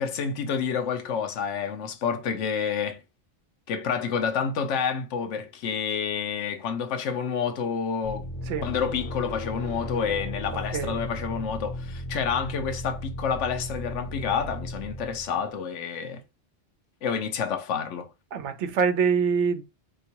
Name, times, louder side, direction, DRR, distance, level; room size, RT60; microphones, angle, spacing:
voice 1, 0.0-3.0 3.7-8.3 8.6-16.2 17.0-18.1, left 6 dB, 80° left, 1.0 m, -29 dB
sound 1, 8.0-15.5, left 1 dB, 35° left, 0.6 m, -35 dB
voice 2, 18.3-19.6, right 6 dB, 75° right, 0.9 m, -25 dB
3.5 x 2.9 x 2.9 m
omnidirectional pair, 1.2 m